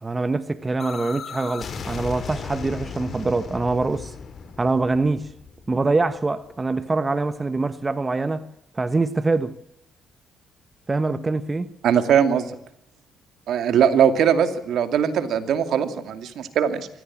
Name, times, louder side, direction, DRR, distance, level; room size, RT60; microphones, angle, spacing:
voice 1, 0.0-4.1 4.6-5.3 5.7-8.5 8.7-9.6 10.9-11.7, right 3 dB, 25° right, 1.3 m, -24 dB
sound 1, 0.8-6.5, left 6 dB, 55° left, 3.6 m, -36 dB
voice 2, 11.8-12.5 13.5-16.9, right 8 dB, 70° right, 2.4 m, -20 dB
23.0 x 16.5 x 7.5 m
supercardioid pair, 65°, 0 cm